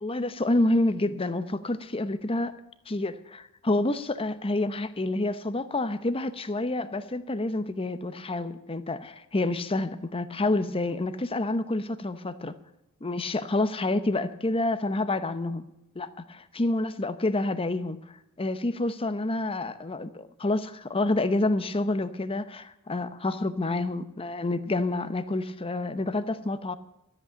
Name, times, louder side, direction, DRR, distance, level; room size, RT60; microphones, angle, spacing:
voice 1, 0.0-2.5 2.9-12.6 13.0-15.6 15.9-18.0 18.4-26.8, left 2 dB, 25° left, 0.7 m, -28 dB
13.0 x 8.3 x 8.9 m
head